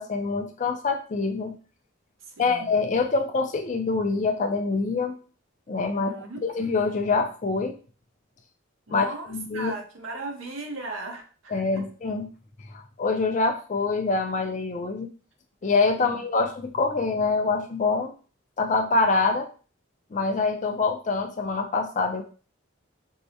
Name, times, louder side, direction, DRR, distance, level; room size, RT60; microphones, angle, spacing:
voice 1, 0.0-1.6 2.4-5.1 5.7-6.1 6.4-7.7 8.9-9.1 9.3-9.7 11.5-12.3 12.7-15.1 15.6-18.1 18.6-19.5 20.1-22.2, left 4 dB, 40° left, 5 dB, 0.4 m, -25 dB
voice 2, 2.2-2.7 5.9-6.4 8.9-11.8 16.0-16.1, right 2 dB, 85° right, 3 dB, 0.8 m, -37 dB
4.5 x 2.1 x 2.7 m, 0.38 s
head